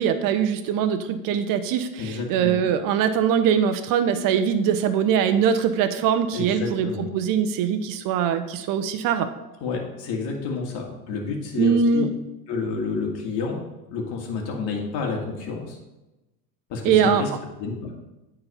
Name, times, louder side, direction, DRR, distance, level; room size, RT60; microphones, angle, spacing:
voice 1, 0.0-6.9 7.1-9.3 11.6-12.1 16.8-17.2, right 7 dB, 45° right, 9 dB, 0.7 m, -22 dB
voice 2, 2.0-2.6 6.3-7.1 9.6-12.0 12.5-13.6 13.9-15.8 16.7-17.3 17.6-17.9, left 4 dB, 55° left, 0 dB, 2.0 m, -29 dB
9.5 x 4.1 x 4.3 m, 1.0 s
hypercardioid pair, 95°, 48 cm